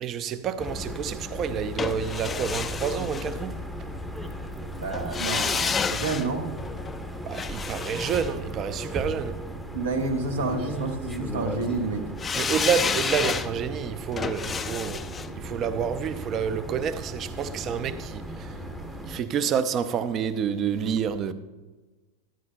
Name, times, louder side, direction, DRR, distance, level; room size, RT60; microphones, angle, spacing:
voice 1, 0.0-3.5 7.2-9.4 12.3-15.0 15.3-18.5 19.0-21.3, right 7 dB, 30° right, 0.5 m, -28 dB
sound 1, 0.6-19.2, equal, 5° right, 0.8 m, -37 dB
sound 2, 1.8-3.9 4.9-9.2 12.2-17.2 17.5-17.6, left 6 dB, 20° left, 0.4 m, -31 dB
voice 2, 4.8-6.4 9.7-12.1, right 3 dB, 65° right, 1.2 m, -29 dB
13.0 x 10.5 x 2.2 m
figure-of-eight pair, 90°, 0 cm